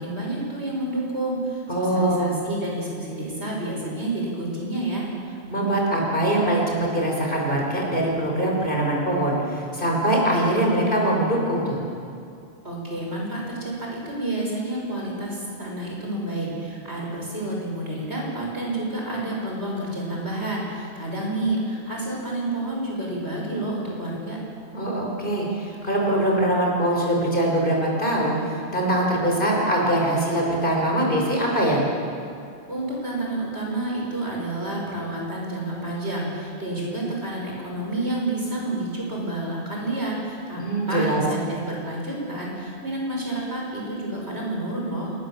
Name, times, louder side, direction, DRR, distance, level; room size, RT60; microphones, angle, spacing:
voice 1, 0.0-5.1 12.6-24.4 32.7-40.6 40.9-45.1, right 1 dB, 80° right, -2 dB, 6.5 m, -29 dB
voice 2, 1.7-2.3 5.5-11.8 24.7-31.8 40.6-41.2, right 1 dB, 50° left, -2 dB, 5.9 m, -22 dB
27.0 x 19.0 x 7.6 m, 2.5 s
omnidirectional pair, 1.1 m